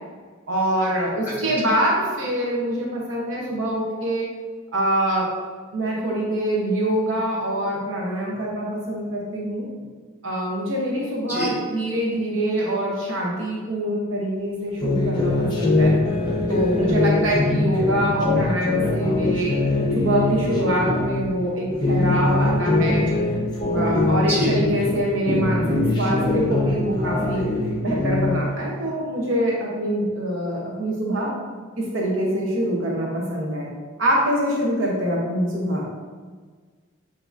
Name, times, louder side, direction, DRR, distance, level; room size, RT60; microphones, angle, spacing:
voice 1, 0.5-4.2 4.7-5.3 5.7-9.7 10.2-15.9 16.5-19.6 19.9-23.1 23.7-27.5 27.8-31.3 31.8-33.7 34.0-35.9, right 1 dB, 70° right, -3 dB, 1.0 m, -24 dB
sound 1, 14.8-21.3 21.7-25.0 25.3-28.4, left 2 dB, 20° left, 0.8 m, -22 dB
voice 2, 24.2-24.7, right 1 dB, 10° right, -8 dB, 1.3 m, -25 dB
7.1 x 2.9 x 2.6 m, 1.5 s
head